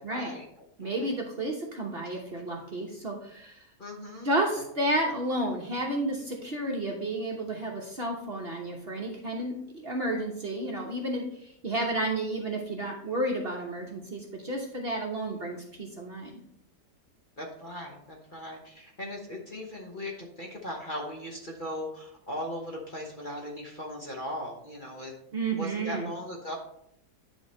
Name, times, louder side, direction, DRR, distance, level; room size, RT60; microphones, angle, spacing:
voice 1, 0.0-1.1 2.1-2.7 3.8-4.4 11.9-12.1 17.4-25.1 25.5-26.6, left 1 dB, 35° left, -1 dB, 1.0 m, -39 dB
voice 2, 0.8-3.7 4.2-16.4 25.3-26.1, right 1 dB, 40° right, -1 dB, 1.0 m, -31 dB
10.0 x 3.6 x 4.2 m, 0.74 s
omnidirectional pair, 1.8 m